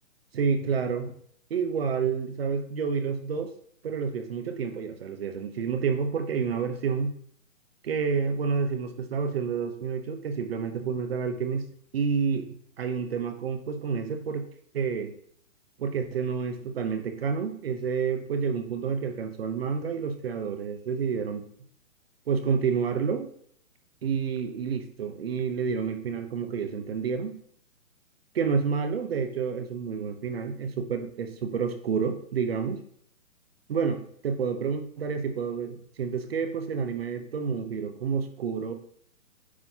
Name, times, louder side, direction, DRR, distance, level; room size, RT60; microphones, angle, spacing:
voice 1, 0.3-1.1 1.5-3.5 3.8-7.1 7.8-11.7 11.9-14.5 14.7-15.1 15.8-21.5 22.3-23.3 24.0-27.4 28.3-32.8 33.7-38.7, right 6 dB, 45° right, 8 dB, 0.8 m, -29 dB
9.5 x 3.8 x 2.8 m, 0.64 s
hypercardioid pair, 165°, 42 cm